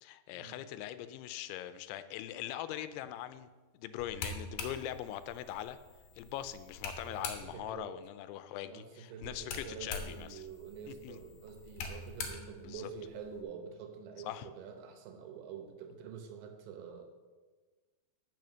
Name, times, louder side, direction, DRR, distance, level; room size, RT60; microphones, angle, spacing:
voice 1, 0.0-3.5 3.7-5.8 6.2-10.4 10.9-11.2 12.6-12.9 14.2-14.5, left 12 dB, 85° left, 12 dB, 2.5 m, -42 dB
sound 1, 4.0-7.8 9.2-13.4, left 4 dB, 65° left, 2.0 m, -44 dB
voice 2, 7.0-7.9 8.6-17.0, right 6 dB, 75° right, 5 dB, 2.9 m, -47 dB
9.2 x 5.5 x 6.2 m, 1.3 s
omnidirectional pair, 4.6 m